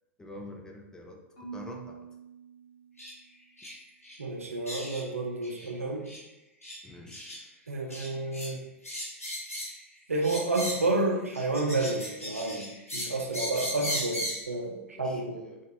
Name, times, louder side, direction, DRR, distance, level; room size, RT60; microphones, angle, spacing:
voice 1, 0.2-2.0 6.8-7.5 14.9-15.6, left 1 dB, 10° left, 1 dB, 0.4 m, -46 dB
Marimba xylophone / Wood, 1.4-3.6, right 6 dB, 50° left, 1.2 m, -46 dB
sound 1, 3.0-3.1 3.6-3.8 4.0-4.2 4.7-5.0 5.4-5.7 6.1-6.2 6.6-6.8 7.1-7.4 7.9-8.5 8.8-9.8 10.2-10.9 11.3-14.5, equal, 85° left, 0.7 m, -37 dB
voice 2, 4.2-6.1 7.7-8.6 10.1-12.7 12.9-15.5, right 2 dB, 80° right, 2 dB, 0.5 m, -30 dB
2.9 x 2.3 x 2.5 m, 0.95 s
figure-of-eight pair, 100°, 7 cm